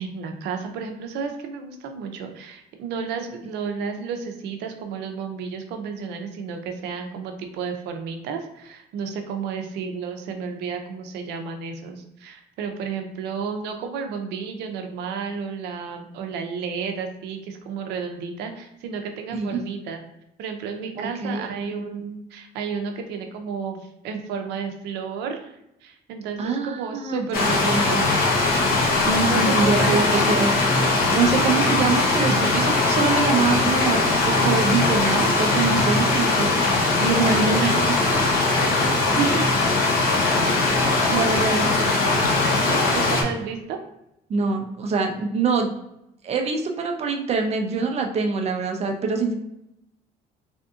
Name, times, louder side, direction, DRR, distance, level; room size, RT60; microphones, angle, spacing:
voice 1, 0.0-20.0 20.4-28.1 29.2-30.5 37.2-37.9 40.8-42.2 42.5-43.8, right 5 dB, 85° right, 5 dB, 0.6 m, -32 dB
voice 2, 21.0-21.5 26.4-27.8 29.1-30.5 31.1-36.5 37.0-38.0 39.1-39.4 41.1-41.9 44.3-45.7 46.2-49.3, right 4 dB, 40° right, 3 dB, 0.5 m, -24 dB
Stream, 27.3-43.2, left 3 dB, 60° left, 0.9 m, -20 dB
3.5 x 2.6 x 2.4 m, 0.85 s
cardioid pair, 110°, 17 cm